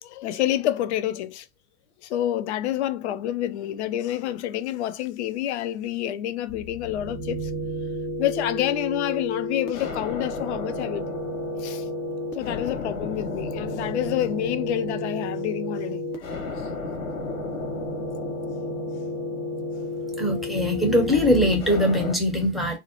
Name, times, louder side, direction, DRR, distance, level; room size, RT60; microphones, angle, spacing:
voice 1, 0.0-1.5 2.0-7.5 8.2-11.2 11.6-11.9 12.3-16.3 16.6-16.8, left 12 dB, 50° left, 0.4 m, -28 dB
sound 1, 6.5-22.2, left 2 dB, 75° left, 1.0 m, -32 dB
voice 2, 20.2-22.8, equal, ahead, 0.5 m, -21 dB
2.5 x 2.1 x 2.8 m
figure-of-eight pair, 100°, 44 cm